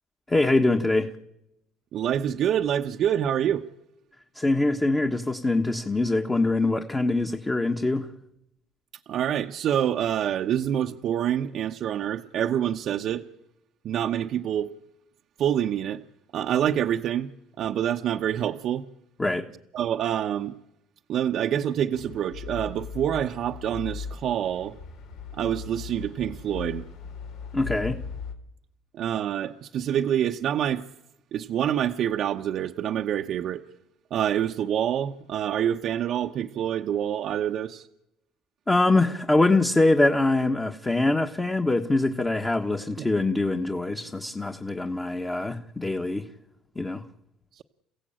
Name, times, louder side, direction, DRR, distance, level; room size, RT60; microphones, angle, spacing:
voice 1, 0.3-1.1 4.3-8.1 19.2-19.5 27.5-28.0 38.7-46.3 46.7-47.0, left 2 dB, 15° left, 1.5 m, -23 dB
voice 2, 1.9-3.7 9.1-13.3 13.8-14.8 15.4-16.0 16.3-17.3 17.6-18.9 19.7-20.5 21.1-24.8 25.3-26.9 28.9-30.8 31.3-33.6 34.1-37.9 43.0-43.1 47.5-47.6, right 10 dB, 55° right, 1.0 m, -26 dB
sound 1, 21.9-28.3, left 6 dB, 75° left, 3.8 m, -38 dB
29.0 x 16.0 x 8.9 m
cardioid pair, 105°, 0 cm